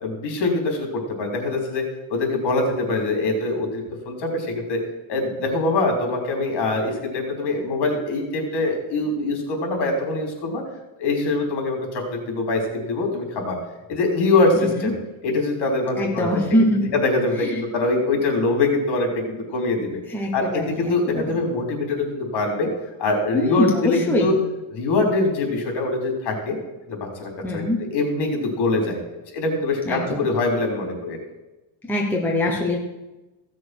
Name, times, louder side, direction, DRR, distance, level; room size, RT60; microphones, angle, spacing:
voice 1, 0.0-4.8 5.1-10.6 11.0-13.6 13.9-14.9 15.2-16.4 16.9-20.0 20.3-22.7 23.0-24.4 24.7-26.6 26.9-27.6 27.9-29.0 29.3-31.2, left 2 dB, 55° left, 2 dB, 3.8 m, -23 dB
voice 2, 14.6-14.9 16.0-16.9 17.4-17.6 20.1-21.4 23.3-24.4 27.4-27.8 29.9-30.3 31.8-32.8, left 1 dB, 5° left, 0 dB, 0.9 m, -23 dB
15.5 x 6.4 x 6.1 m, 1.0 s
cardioid pair, 170°, 49 cm